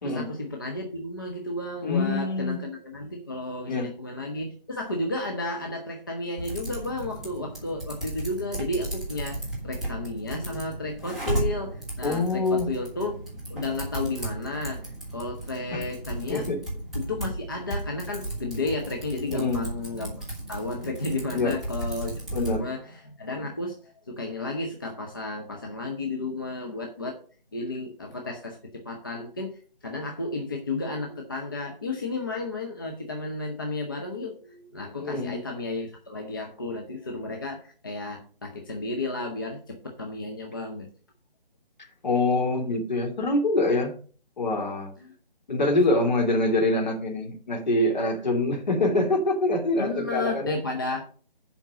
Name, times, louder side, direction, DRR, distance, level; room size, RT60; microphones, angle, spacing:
voice 1, 0.0-13.2 13.5-16.5 16.9-27.2 27.5-28.6 28.8-40.9 45.0-45.1 49.8-51.1, left 2 dB, 20° left, 1 dB, 0.6 m, -33 dB
voice 2, 1.8-2.7 3.7-3.9 12.0-12.7 15.7-15.8 16.3-16.6 19.3-19.6 21.3-21.5 22.3-22.6 35.0-35.4 42.0-44.0 44.4-44.9 45.5-50.5, left 2 dB, 50° left, 2 dB, 2.5 m, -25 dB
Typing, 6.4-22.6, right 1 dB, ahead, 1.6 m, -35 dB
7.5 x 5.3 x 6.7 m, 0.43 s
figure-of-eight pair, 160°, 29 cm